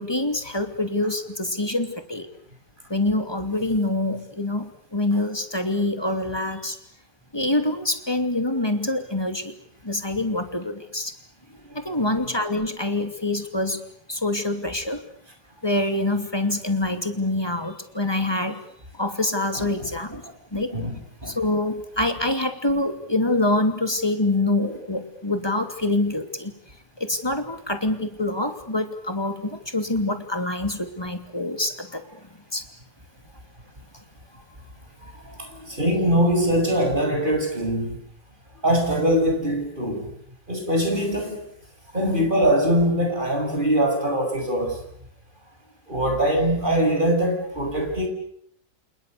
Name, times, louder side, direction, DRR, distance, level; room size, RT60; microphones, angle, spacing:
voice 1, 0.0-2.3 2.9-6.8 7.3-9.5 9.8-11.1 11.7-13.8 14.1-15.0 15.6-18.6 18.9-20.2 20.5-20.7 21.2-26.5 27.0-32.2 32.5-32.6, left 2 dB, 15° left, 7 dB, 2.7 m, -25 dB
voice 2, 11.6-12.3 19.5-19.9 20.7-21.4 24.6-24.7 35.2-38.0 38.6-40.1 40.5-41.4 41.9-44.8 45.9-48.1, equal, 30° right, 3 dB, 7.6 m, -23 dB
29.5 x 28.0 x 6.8 m, 0.69 s
omnidirectional pair, 1.7 m